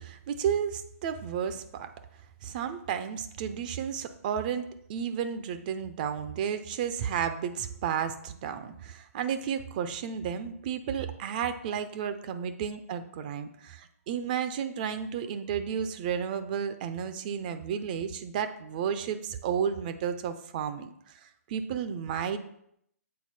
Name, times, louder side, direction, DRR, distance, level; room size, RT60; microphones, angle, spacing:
voice 1, 0.0-1.9 2.4-4.6 4.9-22.4, right 8 dB, 30° right, 10 dB, 0.5 m, -32 dB
7.5 x 4.2 x 4.2 m, 0.72 s
figure-of-eight pair, 130°, 9 cm